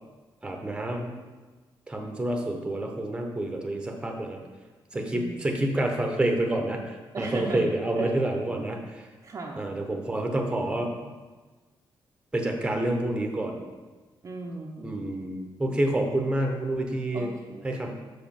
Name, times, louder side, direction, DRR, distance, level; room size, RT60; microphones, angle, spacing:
voice 1, 0.4-1.1 1.9-4.4 4.9-9.1 9.6-11.1 12.3-13.6 14.8-17.3 17.6-17.9, right 1 dB, 10° right, 2 dB, 0.9 m, -28 dB
voice 2, 4.9-5.5 7.1-7.6 7.9-8.1 9.2-9.7 14.2-15.0 17.1-17.9, right 3 dB, 35° right, 0 dB, 0.6 m, -37 dB
6.4 x 5.0 x 5.3 m, 1.3 s
wide cardioid pair, 150°, 9 cm